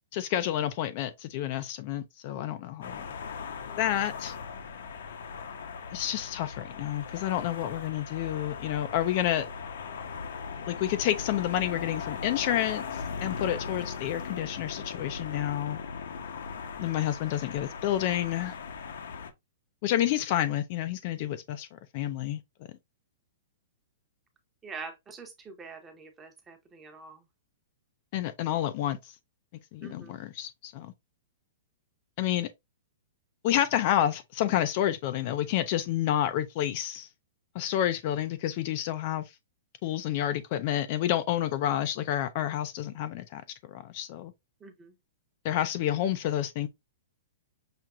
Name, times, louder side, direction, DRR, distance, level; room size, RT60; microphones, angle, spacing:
voice 1, 0.1-3.1 3.8-4.4 5.9-9.5 10.7-15.8 16.8-18.6 19.8-21.7 21.9-22.4 28.1-29.1 29.7-30.9 32.2-32.5 33.4-37.1 37.5-39.3 39.8-44.3 45.4-46.7, left 12 dB, 40° left, 0.4 m, -29 dB
sound 1, 2.8-19.3, left 6 dB, 75° left, 0.8 m, -39 dB
voice 2, 24.6-27.2 29.8-30.2 44.6-44.9, right 4 dB, 10° right, 0.8 m, -45 dB
5.9 x 2.8 x 2.3 m
hypercardioid pair, 160°, 0 cm